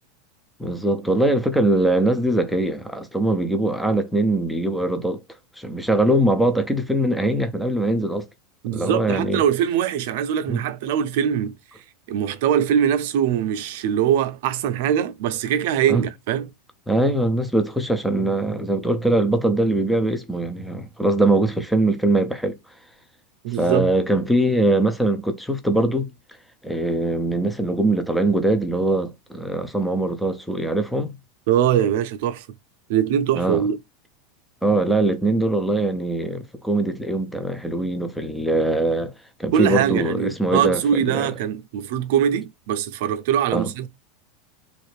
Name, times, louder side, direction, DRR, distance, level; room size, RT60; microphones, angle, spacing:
voice 1, 0.6-5.2 5.6-8.3 8.7-9.4 10.5-10.6 15.9-16.0 16.9-22.6 23.5-26.1 26.6-31.2 33.4-33.7 34.6-39.1 39.4-41.3 43.5-43.7, right 1 dB, ahead, 0.4 m, -22 dB
voice 2, 8.6-11.8 12.1-16.5 23.4-23.9 31.5-32.5 32.9-33.8 39.5-43.9, right 9 dB, 60° right, 0.5 m, -22 dB
3.1 x 2.5 x 3.2 m
supercardioid pair, 170°, 0 cm